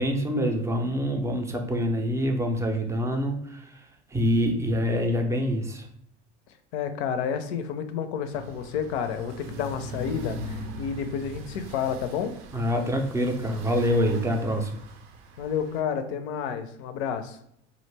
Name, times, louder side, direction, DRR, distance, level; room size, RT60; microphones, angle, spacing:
voice 1, 0.0-5.9 12.5-14.7, equal, 10° right, 3 dB, 0.4 m, -26 dB
voice 2, 6.7-12.3 15.4-17.4, left 7 dB, 70° left, 9 dB, 0.5 m, -30 dB
sound 1, 8.3-15.8, right 1 dB, 60° right, 0.6 m, -41 dB
2.4 x 2.0 x 3.2 m, 0.70 s
hypercardioid pair, 80°, 34 cm